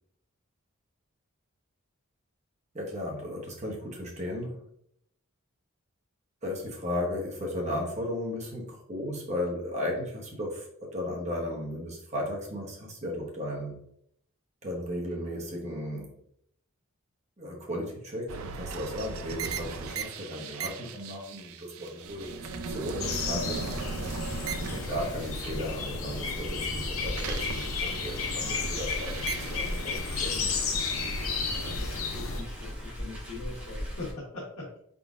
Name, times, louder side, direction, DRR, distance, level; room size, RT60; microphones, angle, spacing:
voice 1, 2.7-4.6 6.4-13.8 14.6-16.1 17.4-23.6 24.7-29.2 29.5-30.5, left 1 dB, 30° right, -1 dB, 0.9 m, -35 dB
sound 1, 18.3-26.2 26.6-30.3, right 5 dB, 75° right, 0.4 m, -38 dB
sound 2, 23.0-32.4, left 4 dB, 70° left, 0.6 m, -32 dB
Car, 26.0-34.1, equal, 10° right, 1.4 m, -40 dB
voice 2, 31.5-34.8, left 2 dB, 85° left, -7 dB, 1.2 m, -42 dB
4.1 x 3.8 x 2.4 m, 0.70 s
head